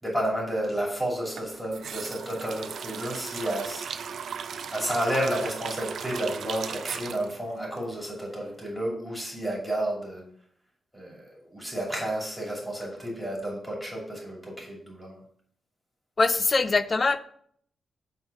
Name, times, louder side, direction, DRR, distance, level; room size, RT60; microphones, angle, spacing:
voice 1, 0.0-3.9 4.7-10.2 10.9-15.2, right 1 dB, ahead, -2 dB, 2.5 m, -31 dB
sound 1, 1.3-8.4 8.6-8.7, right 7 dB, 60° right, 0.4 m, -37 dB
voice 2, 16.2-17.2, left 3 dB, 30° left, 12 dB, 0.4 m, -23 dB
8.0 x 3.6 x 6.5 m, 0.62 s
wide cardioid pair, 165°, 0 cm